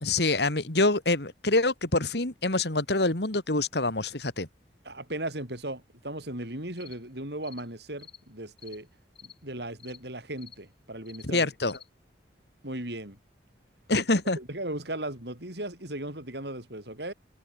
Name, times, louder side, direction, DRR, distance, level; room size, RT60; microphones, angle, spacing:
voice 1, 0.0-4.5 11.2-11.8 13.9-14.4, left 2 dB, 65° left, 2.5 m, -26 dB
voice 2, 4.8-8.9 9.2-11.5 12.6-13.2 14.4-17.1, right 1 dB, 70° right, 7.0 m, -37 dB
sound 1, 6.8-7.0 7.4-7.7 8.0-8.2 8.6-8.8 9.1-9.4 9.8-10.0 10.4-10.6 11.0-11.3 11.7-11.9, left 8 dB, 30° left, 6.1 m, -50 dB
head